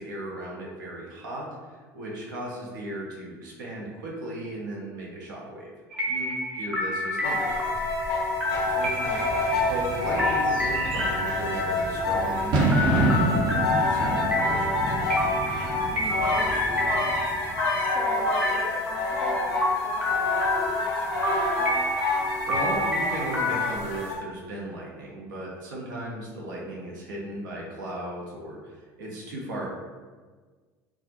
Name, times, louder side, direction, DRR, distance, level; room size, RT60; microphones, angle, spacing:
voice 1, 0.0-1.5 1.8-5.7 6.1-7.5 8.7-9.0 9.6-14.8 22.5-29.7, right 1 dB, 80° right, -3 dB, 0.6 m, -36 dB
sound 1, 5.9-23.7, left 1 dB, 10° right, 0.8 m, -30 dB
sound 2, 7.2-24.2, left 3 dB, 65° left, 0.5 m, -28 dB
Bird / Fireworks, 8.5-17.7, right 2 dB, 45° right, 0.7 m, -29 dB
voice 2, 8.8-9.3 15.9-17.0 17.8-21.9, left 1 dB, 15° left, 1 dB, 0.4 m, -41 dB
2.4 x 2.0 x 2.7 m, 1.4 s
hypercardioid pair, 70°, 10 cm